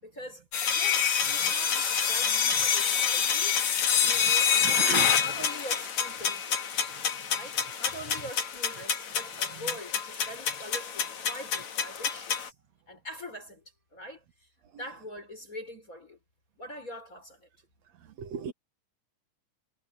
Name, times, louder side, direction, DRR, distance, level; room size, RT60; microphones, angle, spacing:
voice 1, 0.0-6.7 7.3-12.5 12.9-13.6 13.9-14.5 14.8-16.2 16.6-17.5, left 1 dB, 25° left, 5.7 m, -44 dB
sound 1, 0.5-12.5, left 7 dB, 60° left, 3.4 m, -27 dB
voice 2, 4.6-5.2 18.2-18.5, right 8 dB, 60° right, 2.2 m, -34 dB
omnidirectional pair, 3.7 m